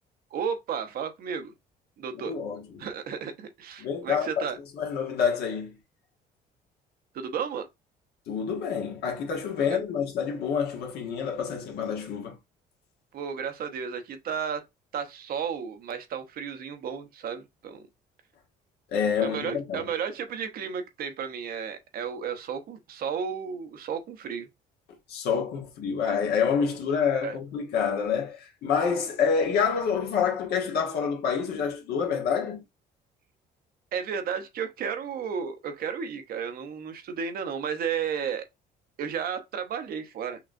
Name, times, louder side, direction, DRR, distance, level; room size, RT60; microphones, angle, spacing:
voice 1, 0.3-1.5 2.0-2.3 2.8-4.6 7.1-7.7 9.6-9.8 13.1-14.6 14.9-17.9 19.2-24.5 27.2-27.4 33.9-38.5 39.0-40.4, right 7 dB, 60° right, 0.9 m, -33 dB
voice 2, 2.2-2.9 3.8-5.8 8.3-12.4 18.9-19.8 25.1-32.6, left 6 dB, 70° left, 1.1 m, -27 dB
5.9 x 2.4 x 2.5 m
cardioid pair, 110°, 17 cm